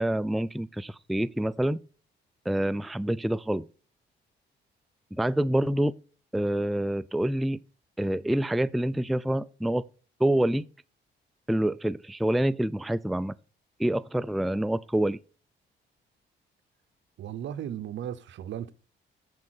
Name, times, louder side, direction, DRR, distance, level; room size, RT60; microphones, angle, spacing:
voice 1, 0.0-1.8 2.5-3.7 5.1-5.9 6.3-7.6 8.0-9.8 10.2-10.7 11.5-13.4 13.8-15.2, right 1 dB, ahead, 0.3 m, -27 dB
voice 2, 17.2-18.7, right 10 dB, 70° right, 0.9 m, -36 dB
14.0 x 4.8 x 4.3 m
cardioid pair, 90°, 20 cm